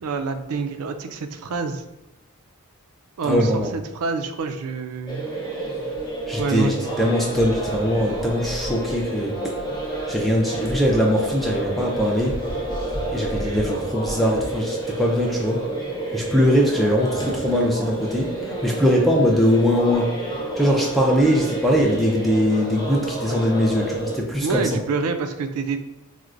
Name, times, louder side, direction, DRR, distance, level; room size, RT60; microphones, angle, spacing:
voice 1, 0.0-1.8 3.2-3.5 3.9-5.2 6.4-7.4 24.4-25.8, right 4 dB, 85° right, 8 dB, 0.4 m, -27 dB
voice 2, 3.2-3.7 6.3-9.5 10.1-12.4 13.1-15.6 16.1-20.1 20.6-24.8, equal, ahead, -2 dB, 0.3 m, -21 dB
sound 1, 5.1-24.2, right 2 dB, 20° left, 0.7 m, -29 dB
4.5 x 2.0 x 2.5 m, 0.99 s
head